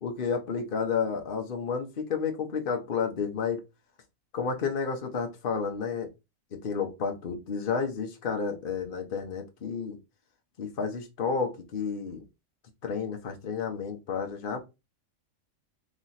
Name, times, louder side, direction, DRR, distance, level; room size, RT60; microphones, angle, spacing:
voice 1, 0.0-3.6 4.3-6.1 6.5-10.0 10.6-12.2 12.8-14.6, left 5 dB, 45° left, 1.0 m, -31 dB
3.1 x 3.0 x 4.0 m
omnidirectional pair, 1.4 m